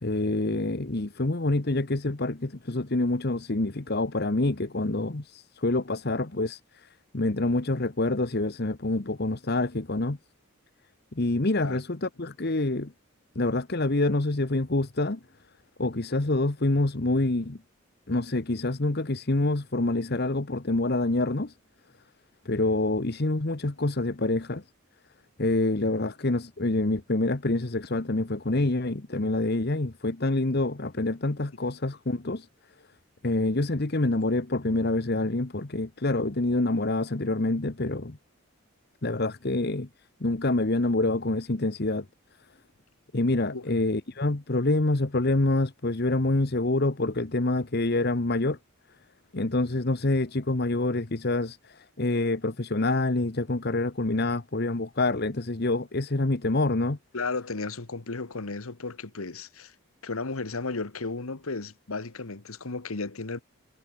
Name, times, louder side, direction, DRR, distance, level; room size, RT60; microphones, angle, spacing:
voice 1, 0.0-10.2 11.1-12.9 13.3-15.2 15.8-17.6 18.1-21.5 22.4-24.6 25.4-32.5 33.2-38.2 39.0-39.9 40.2-42.1 43.1-48.6 49.3-57.0, left 2 dB, 45° left, 1.1 m, -26 dB
voice 2, 57.1-59.7 60.0-63.4, left 3 dB, 75° left, 1.4 m, -34 dB
head